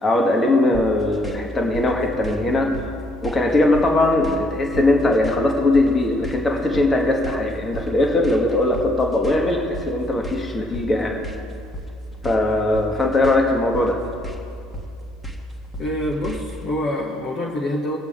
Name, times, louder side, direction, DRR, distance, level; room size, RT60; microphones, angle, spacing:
voice 1, 0.0-2.7 3.2-11.2 12.2-14.0, left 2 dB, 20° left, 2 dB, 1.8 m, -20 dB
sound 1, 0.7-16.6, equal, 5° left, 1.8 m, -34 dB
voice 2, 15.8-18.0, left 1 dB, 40° left, -2 dB, 1.3 m, -26 dB
20.5 x 7.9 x 3.7 m, 2.5 s
figure-of-eight pair, 70°, 0 cm